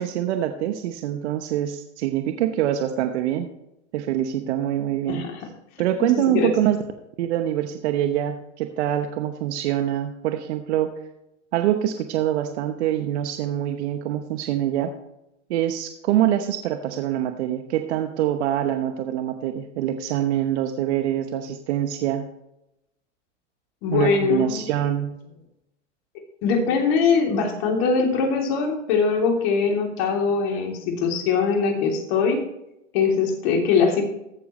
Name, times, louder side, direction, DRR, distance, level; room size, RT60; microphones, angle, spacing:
voice 1, 0.0-3.5 3.9-5.3 5.8-6.8 7.2-11.0 11.5-14.9 15.5-22.3 23.9-25.2, right 11 dB, 65° right, 7 dB, 1.0 m, -25 dB
voice 2, 5.1-5.5 6.1-6.5 23.8-24.6 26.4-32.5 32.9-34.0, left 5 dB, 55° left, 2 dB, 3.2 m, -22 dB
14.5 x 7.1 x 3.2 m, 0.84 s
hypercardioid pair, 115°, 37 cm